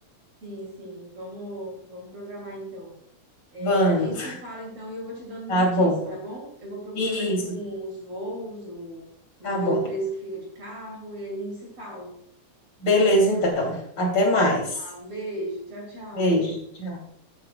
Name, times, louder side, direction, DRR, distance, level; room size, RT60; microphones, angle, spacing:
voice 1, 0.4-3.0 3.5-9.0 9.4-12.2 14.7-16.3, right 1 dB, 45° right, -2 dB, 3.5 m, -36 dB
voice 2, 3.6-4.4 5.5-6.0 7.0-7.5 9.4-9.8 12.8-14.8 16.1-17.0, equal, 35° left, -1 dB, 3.2 m, -22 dB
13.0 x 8.9 x 2.3 m, 0.67 s
omnidirectional pair, 3.7 m